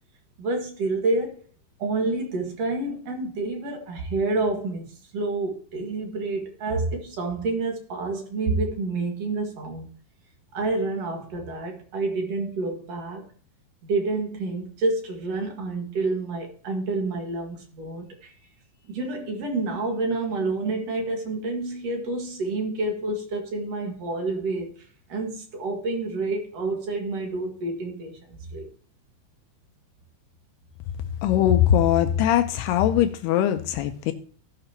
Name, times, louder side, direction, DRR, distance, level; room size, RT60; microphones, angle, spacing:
voice 1, 0.4-1.4 1.8-9.9 10.5-13.3 13.8-18.3 18.9-28.7, right 3 dB, 55° right, 1.8 m, -28 dB
voice 2, 31.2-34.1, left 11 dB, 85° left, 2.3 m, -21 dB
16.0 x 6.7 x 2.9 m
omnidirectional pair, 5.4 m